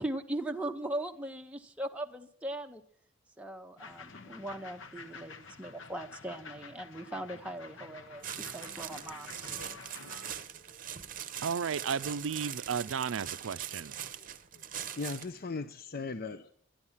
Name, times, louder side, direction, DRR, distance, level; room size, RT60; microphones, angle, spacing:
voice 1, 0.0-2.8 3.4-8.2 8.5-9.5, right 1 dB, 5° right, 0.7 m, -39 dB
sound 1, 3.8-10.3, left 4 dB, 65° left, 1.1 m, -49 dB
voice 2, 4.1-4.5 9.4-9.8 10.6-10.8 14.2-14.3 14.5-14.6 14.9-16.5, left 4 dB, 45° left, 0.6 m, -40 dB
sound 2, 8.2-15.4, right 10 dB, 40° right, 0.8 m, -42 dB
voice 3, 11.4-13.9, right 6 dB, 75° right, 0.5 m, -33 dB
12.0 x 11.0 x 7.2 m
head